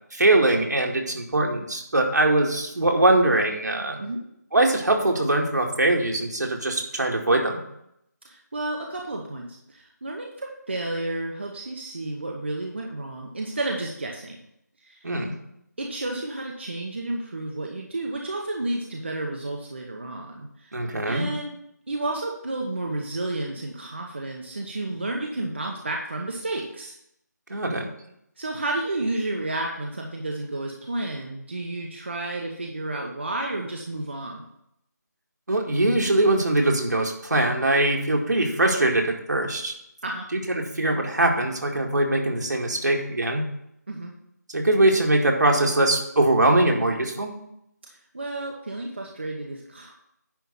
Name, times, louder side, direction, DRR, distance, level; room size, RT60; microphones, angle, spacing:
voice 1, 0.1-4.0 4.5-7.6 15.0-15.4 20.7-21.3 27.5-27.9 35.5-39.7 40.3-43.5 44.5-47.3, right 2 dB, 70° right, 1 dB, 2.1 m, -22 dB
voice 2, 8.2-14.4 14.8-15.1 15.8-20.8 21.1-21.5 21.9-27.0 28.4-34.4 40.0-40.3 43.9-44.1 48.1-49.9, right 2 dB, 40° right, 0 dB, 1.0 m, -31 dB
10.5 x 3.6 x 7.0 m, 0.76 s
figure-of-eight pair, 175°, 10 cm